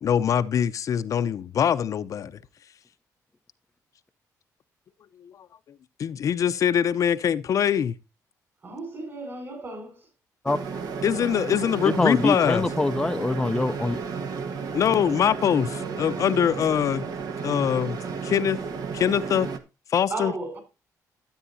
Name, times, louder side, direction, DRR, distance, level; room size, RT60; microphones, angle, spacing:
voice 1, 0.0-2.4 5.2-5.3 6.0-7.9 11.0-12.7 14.7-17.0 17.4-18.0 18.2-18.6 18.9-19.5 19.9-20.3, left 8 dB, 55° left, 0.6 m, -23 dB
voice 2, 8.6-10.1 20.1-20.6, right 2 dB, 35° right, 5.2 m, -34 dB
sound 1, 10.5-19.6, right 5 dB, 70° right, 1.4 m, -33 dB
voice 3, 11.8-14.0, left 2 dB, 10° left, 0.5 m, -24 dB
13.0 x 8.6 x 2.6 m
cardioid pair, 120°, 7 cm